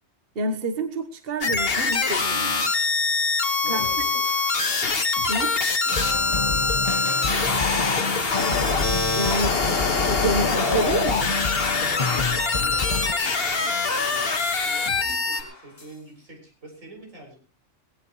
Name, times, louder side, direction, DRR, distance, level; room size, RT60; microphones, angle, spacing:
voice 1, 0.3-2.7 3.7-3.9 5.3-5.6 9.1-9.6 10.1-11.3, right 2 dB, 50° right, 6 dB, 1.4 m, -28 dB
sound 1, 1.4-15.4, left 4 dB, 50° left, 1.7 m, -24 dB
sound 2, 1.5-16.1, left 2 dB, 75° left, 4.1 m, -45 dB
voice 2, 3.6-4.2 6.2-7.5 12.5-14.3 14.6-17.4, right 1 dB, 90° right, 1 dB, 6.9 m, -44 dB
sound 3, 5.9-13.1, left 4 dB, 35° left, 0.8 m, -29 dB
19.5 x 17.0 x 3.1 m, 0.34 s
omnidirectional pair, 1.3 m